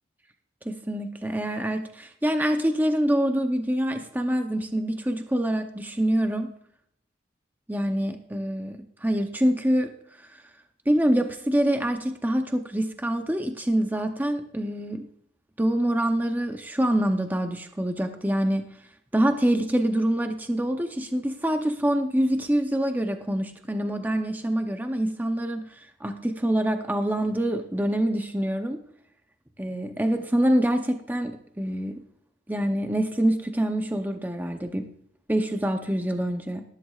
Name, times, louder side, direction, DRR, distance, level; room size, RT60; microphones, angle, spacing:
voice 1, 0.7-6.5 7.7-9.9 10.2-10.4 10.9-15.1 15.6-18.7 19.1-25.7 26.0-28.8 29.6-32.0 32.5-34.9 35.3-36.6, right 1 dB, 10° right, 6 dB, 0.6 m, -25 dB
19.0 x 11.0 x 2.4 m, 0.66 s
head